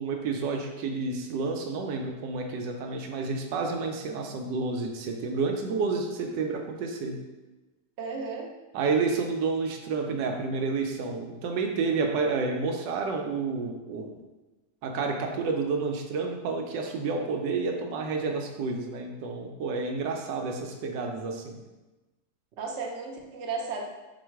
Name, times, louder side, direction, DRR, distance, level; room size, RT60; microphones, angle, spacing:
voice 1, 0.0-7.2 8.7-14.1 14.8-21.6, right 4 dB, 75° right, 2 dB, 1.2 m, -30 dB
voice 2, 8.0-8.5 22.6-23.8, right 4 dB, 60° right, -1 dB, 0.7 m, -34 dB
4.6 x 2.3 x 4.4 m, 1.1 s
omnidirectional pair, 2.0 m